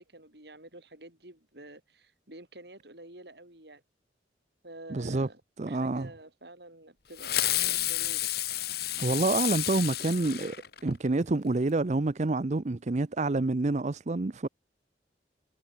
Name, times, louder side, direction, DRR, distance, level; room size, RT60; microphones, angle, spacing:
voice 1, 0.0-3.8 4.6-5.4 5.7-8.3, right 1 dB, 65° right, 7.8 m, -49 dB
voice 2, 4.9-5.3 5.6-6.1 9.0-10.6 10.8-14.5, right 2 dB, 40° right, 0.6 m, -28 dB
Fireworks, 7.2-11.1, left 14 dB, 60° left, 2.4 m, -30 dB
head